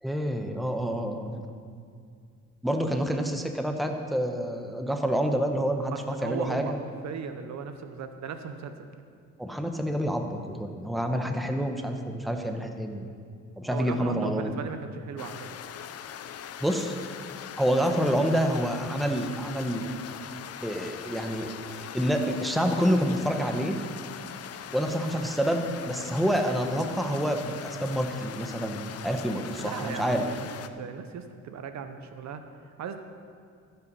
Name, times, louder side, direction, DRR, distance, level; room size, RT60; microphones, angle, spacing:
voice 1, 0.0-1.5 2.6-6.8 9.4-13.1 13.6-14.5 16.6-17.0 17.6-19.9 20.6-23.8 24.7-30.2, equal, ahead, 4 dB, 1.0 m, -28 dB
voice 2, 5.9-6.8 7.0-8.7 13.7-15.6 29.6-33.0, right 6 dB, 65° right, 8 dB, 0.8 m, -37 dB
sound 1, 15.2-30.7, left 9 dB, 55° left, 0.6 m, -41 dB
15.0 x 5.8 x 5.5 m, 2.2 s
cardioid pair, 90°, 30 cm